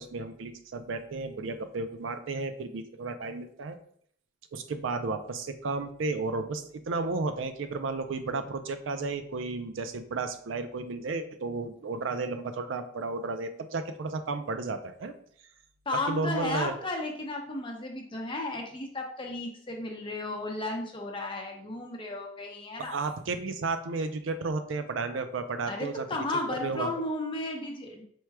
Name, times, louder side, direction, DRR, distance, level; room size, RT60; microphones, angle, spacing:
voice 1, 0.0-3.8 4.5-15.1 16.1-16.7 22.8-26.0 26.6-26.9, right 3 dB, 85° right, 9 dB, 0.4 m, -33 dB
voice 2, 15.9-23.0 25.7-28.0, left 2 dB, 25° left, 1 dB, 0.8 m, -34 dB
4.5 x 2.2 x 4.6 m, 0.62 s
head